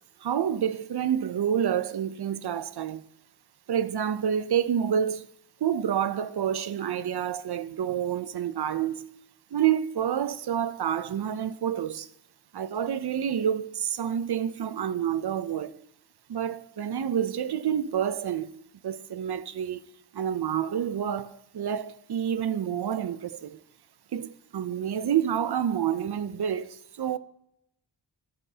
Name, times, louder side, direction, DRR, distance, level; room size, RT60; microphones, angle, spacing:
voice 1, 0.2-3.0 3.7-5.3 5.6-9.1 9.5-12.1 12.5-15.7 16.3-18.5 18.8-19.9 20.1-23.6 24.1-27.2, right 9 dB, 60° right, 0.5 m, -28 dB
10.5 x 7.8 x 2.8 m
cardioid pair, 50°, 45 cm